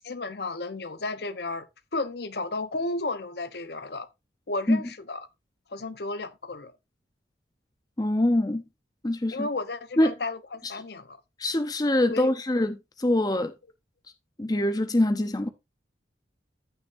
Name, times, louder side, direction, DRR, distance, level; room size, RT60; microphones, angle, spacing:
voice 1, 0.1-1.7 1.9-4.1 4.5-5.3 5.7-6.7 9.3-11.2 12.1-12.3, left 2 dB, 65° left, 0.9 m, -33 dB
voice 2, 8.0-8.6 9.0-9.5 10.0-10.1 11.4-13.5 14.4-15.5, left 1 dB, 20° left, 0.6 m, -24 dB
14.5 x 6.4 x 2.6 m
head